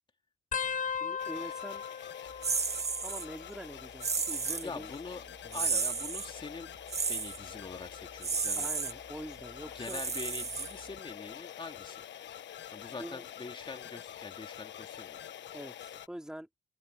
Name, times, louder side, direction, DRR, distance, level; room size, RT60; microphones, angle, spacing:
sound 1, 0.5-3.7 4.0-4.6 5.6-7.0 7.7-8.0 9.2-9.6 11.1-11.2, left 7 dB, 40° left, 1.0 m, -40 dB
voice 1, 1.0-1.8 3.0-4.9 5.4-5.7 8.6-10.0 12.9-13.2 15.5-16.5, equal, 5° right, 3.2 m, -44 dB
sound 2, 1.2-16.1, left 10 dB, 65° left, 1.2 m, -46 dB
sound 3, 2.4-3.3 4.0-4.7 5.5-6.3 6.9-7.4 8.2-8.9 9.8-11.0, right 5 dB, 30° right, 1.9 m, -32 dB
voice 2, 4.6-5.3 5.5-6.7 7.1-8.7 9.7-12.1 12.7-15.3, left 4 dB, 25° left, 2.3 m, -44 dB
cardioid pair, 90°, 20 cm